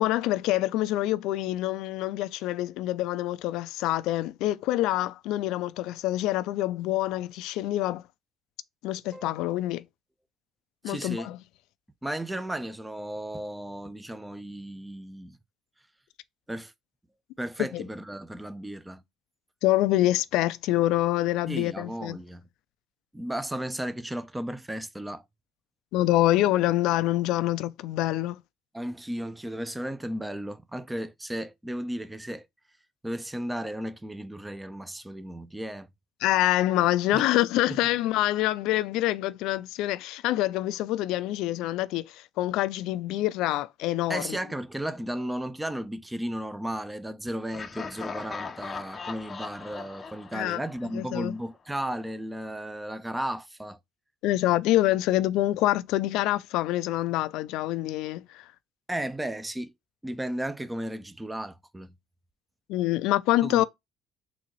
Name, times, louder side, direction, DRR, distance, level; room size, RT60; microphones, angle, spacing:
voice 1, 0.0-8.0 8.8-9.8 10.8-11.4 17.6-17.8 19.6-22.2 25.9-28.4 36.2-44.4 50.3-50.6 50.9-51.3 54.2-58.4 62.7-63.6, left 15 dB, 75° left, 0.4 m, -26 dB
voice 2, 10.8-11.3 12.0-15.4 16.5-16.7 17.4-19.0 21.5-22.4 23.1-25.2 28.7-32.5 33.0-35.9 37.1-37.3 37.7-37.8 44.1-53.8 58.9-59.7 60.0-61.9 63.4-63.6, right 1 dB, 10° right, 0.6 m, -34 dB
Laughter, 47.5-51.4, left 5 dB, 30° left, 0.6 m, -39 dB
4.0 x 2.7 x 2.9 m
supercardioid pair, 95°, 0 cm